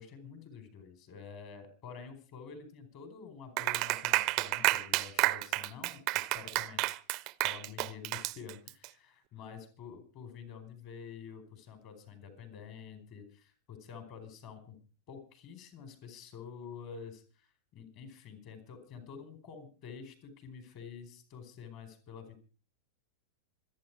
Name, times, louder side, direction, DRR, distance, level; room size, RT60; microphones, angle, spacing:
voice 1, 0.0-6.8 7.4-14.8 15.1-22.4, left 6 dB, 45° left, 8 dB, 4.4 m, -48 dB
Clapping, 3.6-8.9, right 21 dB, 40° right, 0.6 m, -30 dB
26.0 x 9.4 x 4.7 m, 0.37 s
figure-of-eight pair, 90°, 0 cm